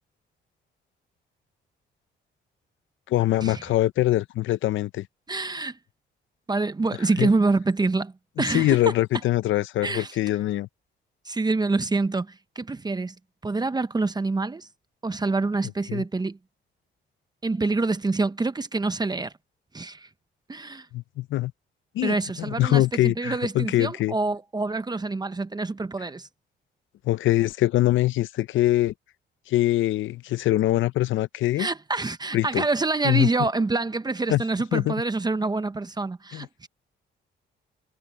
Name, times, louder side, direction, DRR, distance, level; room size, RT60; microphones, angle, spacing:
voice 1, 3.1-5.1 7.2-7.3 8.5-10.7 15.9-16.0 20.9-21.5 21.9-22.1 22.5-24.1 27.0-28.9 29.5-31.7 32.3-32.6 33.0-33.3 34.3-34.4 34.7-34.9 36.3-36.5, left 15 dB, 75° left, 0.6 m, -23 dB
voice 2, 5.3-5.8 6.5-8.9 9.8-10.2 11.2-13.1 13.4-14.7 15.0-16.4 17.4-19.3 19.7-20.1 20.5-20.9 22.0-26.3 31.6-36.7, right 3 dB, 20° right, 0.9 m, -26 dB
cardioid pair, 90°, 20 cm